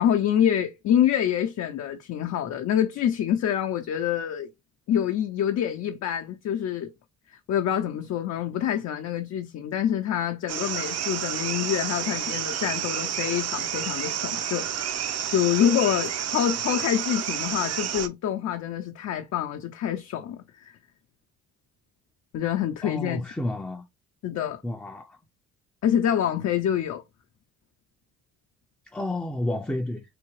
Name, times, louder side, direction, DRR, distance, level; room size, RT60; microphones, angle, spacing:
voice 1, 0.0-4.5 4.9-6.9 7.5-20.7 22.3-23.2 24.2-24.6 25.8-27.0, left 10 dB, 60° left, 0.5 m, -26 dB
sound 1, 10.5-18.1, right 9 dB, 60° right, 0.6 m, -30 dB
voice 2, 22.8-23.8 24.6-25.1 28.9-30.0, left 1 dB, 5° left, 0.4 m, -30 dB
3.4 x 2.7 x 3.1 m
cardioid pair, 90°, 30 cm